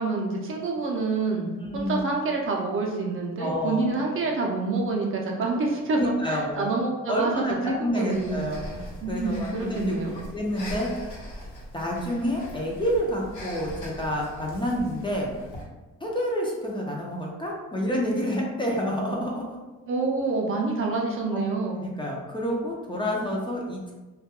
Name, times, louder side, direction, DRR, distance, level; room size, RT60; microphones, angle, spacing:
voice 1, 0.0-8.5 9.0-10.2 19.9-21.8, right 3 dB, 45° right, -1 dB, 0.5 m, -27 dB
voice 2, 1.6-2.1 3.4-3.9 6.0-6.7 7.1-8.7 9.1-11.1 11.7-15.3 16.0-19.6 21.8-23.9, equal, 15° left, -3 dB, 0.4 m, -28 dB
Breathing, 8.1-15.6, left 1 dB, 70° left, 0.8 m, -41 dB
2.3 x 2.2 x 2.8 m, 1.2 s
cardioid pair, 90°, 30 cm